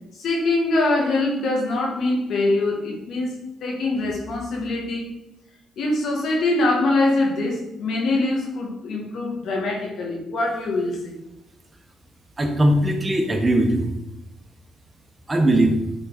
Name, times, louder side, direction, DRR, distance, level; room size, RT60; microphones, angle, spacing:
voice 1, 0.2-5.1 5.8-11.1, left 2 dB, 70° left, 0 dB, 2.1 m, -23 dB
voice 2, 12.4-13.9 15.3-15.8, right 1 dB, 25° right, 3 dB, 1.3 m, -19 dB
8.8 x 4.0 x 4.2 m, 0.94 s
cardioid pair, 90°, 0 cm